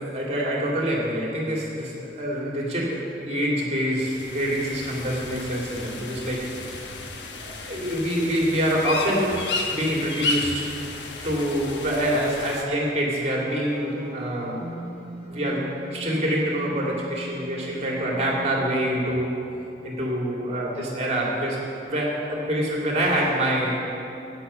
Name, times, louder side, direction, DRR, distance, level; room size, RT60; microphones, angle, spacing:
voice 1, 0.0-6.5 7.4-9.4 9.7-10.7 11.2-14.6 15.3-19.4 19.8-23.8, equal, 40° right, -3 dB, 2.4 m, -26 dB
sound 1, 4.0-12.6, left 3 dB, 90° left, 1.2 m, -33 dB
sound 2, 13.2-19.3, equal, 65° left, 2.1 m, -39 dB
13.5 x 9.2 x 5.5 m, 2.8 s
head